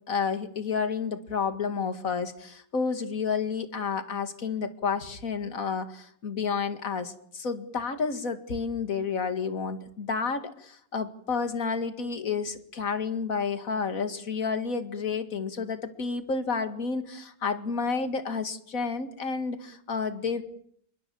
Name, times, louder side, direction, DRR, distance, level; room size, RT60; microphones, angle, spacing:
voice 1, 0.1-20.4, left 5 dB, 40° left, 9 dB, 2.4 m, -30 dB
28.5 x 23.0 x 7.1 m, 0.64 s
omnidirectional pair, 2.4 m